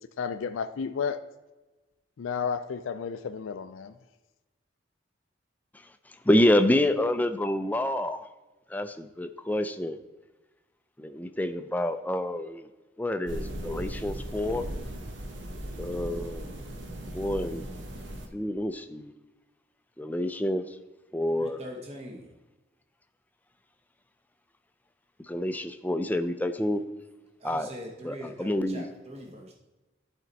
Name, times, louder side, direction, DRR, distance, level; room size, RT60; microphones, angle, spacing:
voice 1, 0.2-1.2 2.2-3.9, left 6 dB, 85° left, 0.4 m, -32 dB
voice 2, 6.1-8.3 8.7-10.0 11.0-12.7 13.0-14.7 15.8-16.5 17.1-17.6 18.3-19.1 20.0-20.8 21.1-21.6 25.2-26.8 27.4-27.7 28.0-28.9, left 1 dB, 10° left, 0.3 m, -28 dB
sound 1, 13.3-18.3, equal, 70° right, 1.0 m, -37 dB
voice 3, 21.3-22.4 27.4-29.5, equal, 30° right, 0.9 m, -42 dB
11.0 x 4.4 x 4.0 m
head